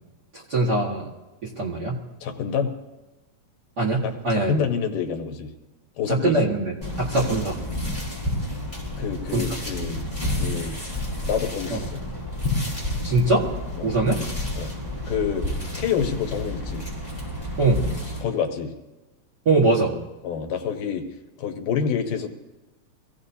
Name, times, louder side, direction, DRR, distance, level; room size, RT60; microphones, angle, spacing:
voice 1, 0.3-1.1 1.4-2.0 3.8-4.5 6.1-7.6 9.3-9.4 11.7-11.8 13.0-13.5 13.8-14.2 17.6-17.8 19.4-19.9, right 2 dB, 40° right, -4 dB, 1.6 m, -22 dB
voice 2, 2.2-2.7 4.0-5.5 6.0-6.4 9.0-10.0 10.4-10.8 11.3-12.0 13.8-14.0 14.6-14.7 15.1-15.5 15.8-16.9 18.2-18.7 20.2-21.0 21.4-22.3, left 7 dB, 75° left, 4 dB, 2.7 m, -27 dB
sound 1, 6.8-18.2, left 1 dB, 5° left, 5.2 m, -30 dB
25.0 x 16.5 x 2.8 m, 1.1 s
omnidirectional pair, 3.9 m